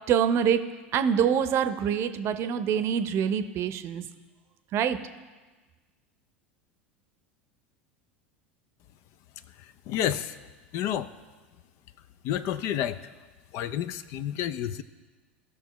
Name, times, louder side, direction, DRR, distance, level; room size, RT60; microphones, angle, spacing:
voice 1, 0.1-0.6 0.9-4.0 4.7-5.0, right 8 dB, 45° right, 10 dB, 0.7 m, -25 dB
voice 2, 9.9-10.3 10.7-11.1 12.2-13.0 13.5-14.8, left 10 dB, 55° left, 13 dB, 0.5 m, -29 dB
16.5 x 6.1 x 3.1 m, 1.3 s
hypercardioid pair, 80°, 6 cm